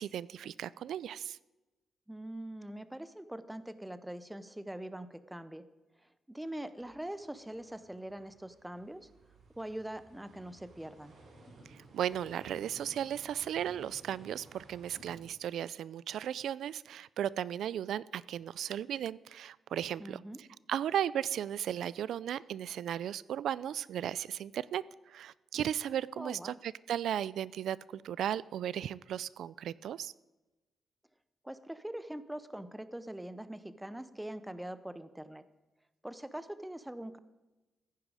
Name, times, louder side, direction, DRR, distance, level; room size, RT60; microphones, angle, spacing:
voice 1, 0.0-1.4 11.7-20.2 20.7-30.1, right 10 dB, 90° right, 20 dB, 0.3 m, -36 dB
voice 2, 2.1-5.6 6.3-9.1 9.6-11.1 20.0-20.4 26.2-26.6 31.4-35.4 36.0-37.2, right 1 dB, 5° right, 13 dB, 0.6 m, -43 dB
sound 1, 6.8-15.2, right 2 dB, 70° right, 4.6 m, -57 dB
14.5 x 10.0 x 4.8 m, 1.1 s
wide cardioid pair, 155°, 0 cm